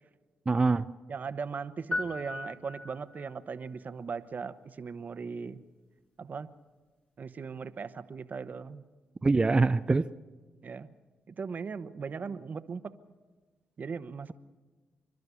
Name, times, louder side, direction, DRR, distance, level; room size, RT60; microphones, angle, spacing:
voice 1, 0.5-0.9 9.2-10.1, right 3 dB, 25° right, 0.5 m, -24 dB
voice 2, 1.1-5.6 6.2-6.5 7.2-8.8 10.6-10.9 11.3-12.9 13.8-14.3, right 5 dB, 50° right, 1.1 m, -38 dB
sound 1, 1.9-3.4, left 2 dB, 35° left, 2.7 m, -37 dB
27.5 x 12.0 x 8.3 m
cardioid pair, 70°, 4 cm